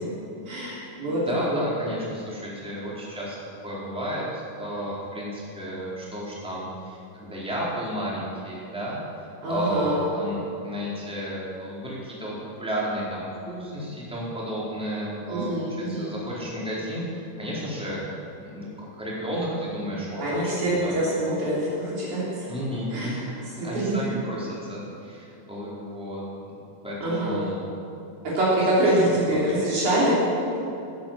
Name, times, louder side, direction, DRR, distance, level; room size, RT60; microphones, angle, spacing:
voice 1, 0.5-1.2 1.5-1.6 9.4-10.0 15.3-16.1 20.2-22.2 22.9-23.1 23.6-24.0 27.0-27.4 28.2-30.2, right 1 dB, 65° right, -7 dB, 4.6 m, -24 dB
voice 2, 1.0-3.4 3.6-12.3 12.6-18.1 18.4-21.2 22.5-26.2 26.8-27.7 28.8-29.5, equal, ahead, -7 dB, 3.8 m, -32 dB
18.0 x 8.8 x 7.5 m, 2.7 s
omnidirectional pair, 3.9 m